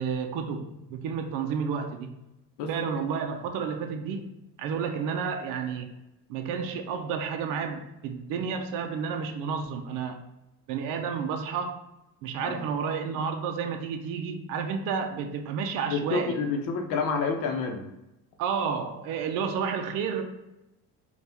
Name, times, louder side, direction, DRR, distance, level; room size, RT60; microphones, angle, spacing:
voice 1, 0.0-2.1 2.7-5.9 6.3-10.2 10.7-11.7 12.2-16.4 18.4-20.2, right 6 dB, 70° right, 5 dB, 0.5 m, -31 dB
voice 2, 2.6-2.9 12.4-12.6 15.9-17.8, left 4 dB, 80° left, 3 dB, 0.7 m, -29 dB
4.2 x 2.3 x 3.4 m, 0.92 s
cardioid pair, 170°, 34 cm